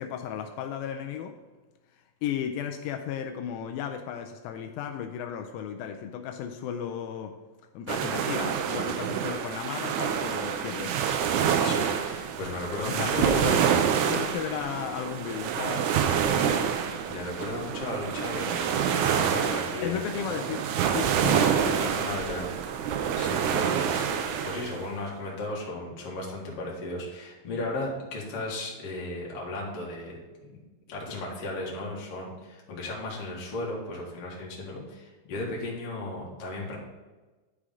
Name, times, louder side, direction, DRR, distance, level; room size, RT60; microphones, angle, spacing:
voice 1, 0.0-1.4 2.2-7.4 7.7-11.0 12.9-13.6 13.9-16.5 19.8-21.5, left 8 dB, 85° left, 5 dB, 2.3 m, -34 dB
sound 1, 7.9-24.8, right 8 dB, 80° right, 1.8 m, -27 dB
voice 2, 11.6-13.5 17.1-20.1 21.6-22.5 23.2-24.0 24.4-30.6 30.9-36.8, left 2 dB, 50° left, -3 dB, 2.3 m, -35 dB
11.5 x 4.9 x 3.7 m, 1.2 s
omnidirectional pair, 4.1 m